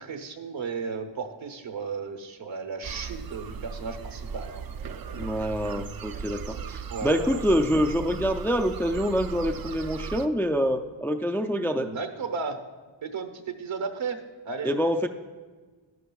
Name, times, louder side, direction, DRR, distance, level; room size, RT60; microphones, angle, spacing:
voice 1, 0.0-4.6 6.9-7.4 11.7-12.6 13.0-14.2 14.4-14.8, right 5 dB, 70° right, 7 dB, 1.1 m, -34 dB
sound 1, 2.8-10.3, right 6 dB, 50° right, 0.5 m, -37 dB
voice 2, 5.2-11.9 14.6-15.1, equal, 5° left, 6 dB, 0.3 m, -26 dB
12.0 x 11.0 x 2.3 m, 1.4 s
wide cardioid pair, 85°, 48 cm